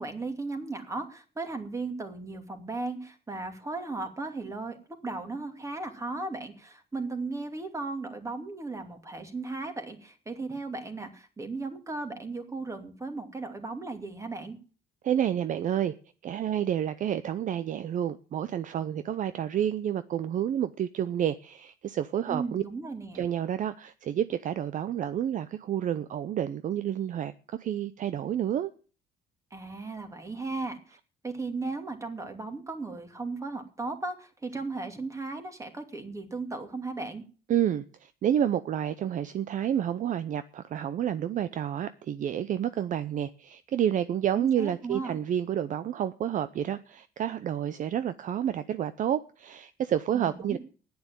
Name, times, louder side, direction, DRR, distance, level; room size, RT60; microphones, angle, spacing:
voice 1, 0.0-4.8 5.0-14.6 22.3-23.3 29.5-31.0 31.2-37.2 44.3-45.1 50.1-50.6, right 3 dB, 20° right, 2.7 m, -36 dB
voice 2, 15.0-15.9 16.2-22.6 23.1-28.7 37.5-50.6, right 10 dB, 50° right, 0.7 m, -29 dB
10.5 x 9.7 x 8.9 m
cardioid pair, 110°, 17 cm